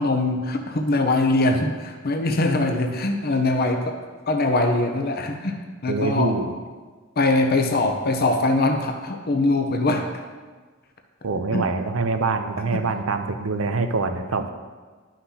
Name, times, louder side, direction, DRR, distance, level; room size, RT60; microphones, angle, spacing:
voice 1, 0.0-4.0 4.3-5.5 5.8-6.4 7.2-10.1 11.5-11.7, left 2 dB, 45° left, 4 dB, 0.7 m, -22 dB
voice 2, 5.9-6.5 11.2-14.5, right 3 dB, 70° right, 8 dB, 0.6 m, -25 dB
11.5 x 5.8 x 2.8 m, 1.4 s
head